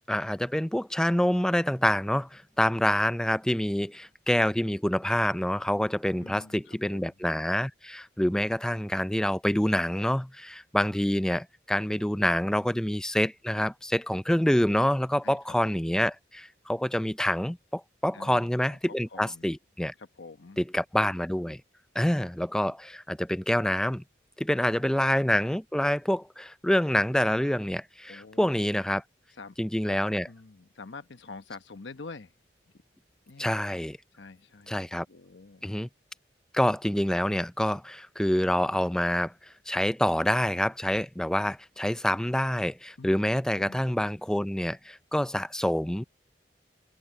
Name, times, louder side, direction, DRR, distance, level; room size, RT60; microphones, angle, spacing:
voice 1, 0.1-19.9 20.6-21.6 22.0-24.0 24.4-29.0 29.6-30.3 33.4-34.0 34.7-35.1 35.6-35.9 36.5-39.3 39.7-46.0, equal, 5° left, 0.4 m, -27 dB
voice 2, 6.2-7.1 11.9-12.9 15.2-15.6 18.1-19.5 20.0-20.6 24.7-25.0 28.1-28.6 29.3-29.6 29.9-32.3 33.3-33.5 34.1-35.7 43.0-43.1 43.5-43.8, left 3 dB, 85° left, 1.0 m, -47 dB
head